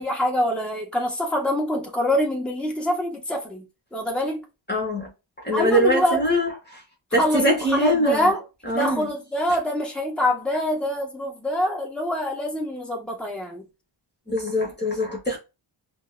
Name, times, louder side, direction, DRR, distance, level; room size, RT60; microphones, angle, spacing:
voice 1, 0.0-3.6 3.9-4.4 5.5-6.5 7.2-8.4 8.7-13.7, left 1 dB, ahead, 1.4 m, -25 dB
voice 2, 4.7-5.1 5.4-6.5 7.1-8.3 8.6-9.1 14.3-15.4, equal, 20° left, 1.3 m, -23 dB
5.2 x 2.2 x 2.6 m
cardioid pair, 65°, 50 cm